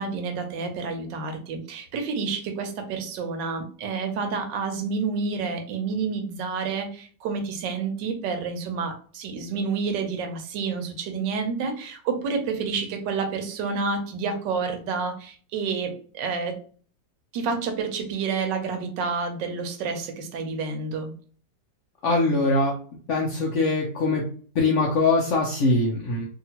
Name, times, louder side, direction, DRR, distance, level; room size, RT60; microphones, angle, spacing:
voice 1, 0.0-16.6 17.3-21.1, right 5 dB, 85° right, 5 dB, 1.3 m, -29 dB
voice 2, 22.0-22.7 23.1-24.2 24.6-26.3, left 3 dB, 70° left, -1 dB, 0.7 m, -22 dB
2.9 x 2.8 x 2.8 m, 0.43 s
omnidirectional pair, 1.9 m